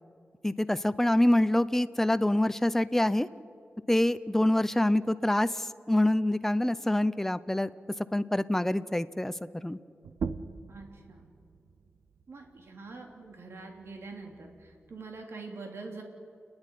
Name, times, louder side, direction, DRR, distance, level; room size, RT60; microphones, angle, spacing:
voice 1, 0.4-3.3 3.9-7.7 8.1-9.3 9.6-9.8, left 1 dB, 10° left, 14 dB, 0.6 m, -26 dB
sound 1, 10.0-15.2, right 5 dB, 85° right, 0.7 m, -43 dB
voice 2, 10.7-11.3 12.3-16.0, right 3 dB, 65° right, 2 dB, 3.2 m, -44 dB
29.5 x 10.5 x 9.9 m, 2.3 s
wide cardioid pair, 110°, 5 cm